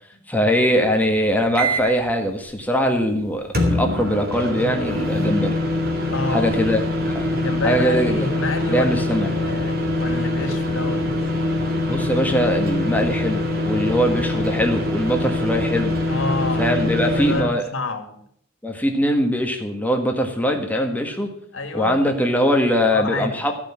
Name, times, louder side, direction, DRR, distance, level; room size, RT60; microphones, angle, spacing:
voice 1, 0.3-5.6 6.3-6.8 7.0-7.3 7.6-8.4 8.7-9.3 11.9-15.9 16.6-17.6 18.6-21.3 21.7-23.5, equal, 10° left, 3 dB, 1.5 m, -21 dB
sound 1, 1.5-2.0 3.5-17.4, left 1 dB, 50° right, 2.5 m, -23 dB
voice 2, 6.1-6.5 7.3-11.0 16.1-18.2 21.5-22.7 22.9-23.5, left 2 dB, 85° left, 7 dB, 2.0 m, -29 dB
14.5 x 6.0 x 8.7 m, 0.68 s
head